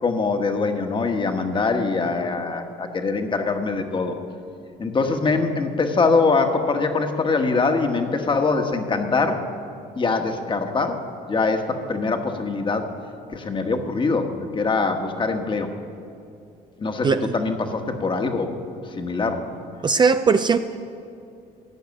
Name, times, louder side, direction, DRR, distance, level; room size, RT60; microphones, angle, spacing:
voice 1, 0.0-4.2 4.8-9.4 9.9-11.0 11.3-12.9 13.3-15.7 16.8-19.4, left 4 dB, 30° left, 5 dB, 1.3 m, -23 dB
voice 2, 17.0-17.4 19.8-20.6, right 5 dB, 25° right, 9 dB, 0.4 m, -19 dB
15.0 x 6.5 x 9.5 m, 2.6 s
cardioid pair, 110°, 17 cm